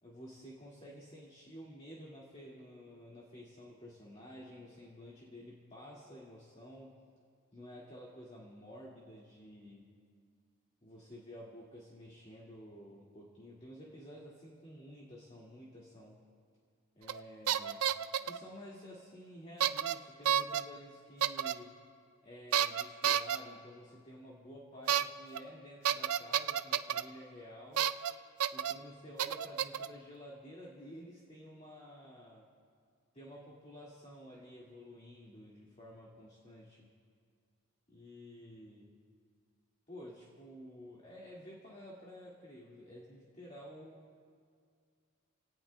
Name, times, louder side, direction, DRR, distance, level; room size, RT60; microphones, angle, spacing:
voice 1, 0.0-7.0 7.5-9.9 10.8-16.3 17.0-17.9 18.2-21.8 22.2-27.9 28.5-32.5 33.1-36.9 37.9-39.0 39.9-44.3, equal, 30° left, -5 dB, 2.0 m, -51 dB
sound 1, 17.1-17.2 17.5-18.4 19.6-19.9 20.2-20.6 21.2-21.5 22.5-23.4 24.9-25.0 25.3-25.4 25.8-27.0 27.8-28.1 28.4-28.7 29.2-29.9, right 10 dB, 75° right, 0.5 m, -30 dB
28.5 x 18.0 x 2.2 m, 2.2 s
head